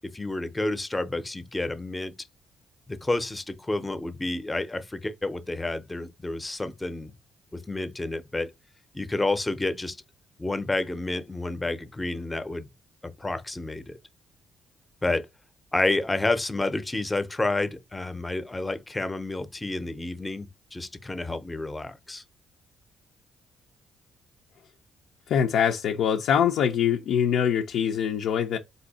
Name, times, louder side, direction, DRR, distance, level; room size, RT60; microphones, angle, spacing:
voice 1, 0.1-2.1 2.9-7.1 7.5-8.5 8.9-10.0 10.4-12.7 13.0-13.9 15.0-15.2 15.7-22.2, left 2 dB, 15° left, 0.6 m, -30 dB
voice 2, 25.3-28.6, left 8 dB, 75° left, 0.5 m, -23 dB
4.1 x 2.7 x 4.0 m
cardioid pair, 90°, 0 cm